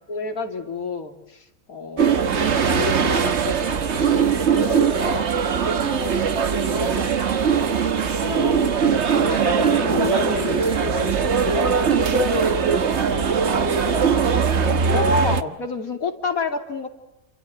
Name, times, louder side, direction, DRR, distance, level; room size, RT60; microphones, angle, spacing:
voice 1, 0.0-4.1 4.4-5.2 8.1-11.2 11.5-11.6 14.9-16.9, left 3 dB, 75° left, 6 dB, 3.1 m, -29 dB
sound 1, 2.0-15.4, right 6 dB, 55° right, 1.4 m, -21 dB
voice 2, 4.0-5.0 5.6-7.7 9.9-11.3 11.9-14.8, right 2 dB, 70° right, -1 dB, 4.0 m, -30 dB
28.5 x 26.5 x 8.0 m, 0.93 s
omnidirectional pair, 1.5 m